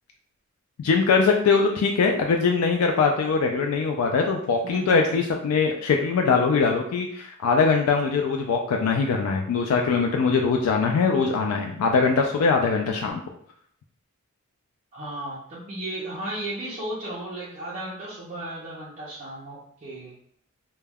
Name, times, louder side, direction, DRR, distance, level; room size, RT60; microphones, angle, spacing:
voice 1, 0.8-13.2, left 4 dB, 85° left, 2 dB, 0.3 m, -22 dB
voice 2, 4.6-5.2 14.9-20.1, right 1 dB, 35° right, -9 dB, 0.5 m, -35 dB
2.2 x 2.1 x 3.3 m, 0.66 s
head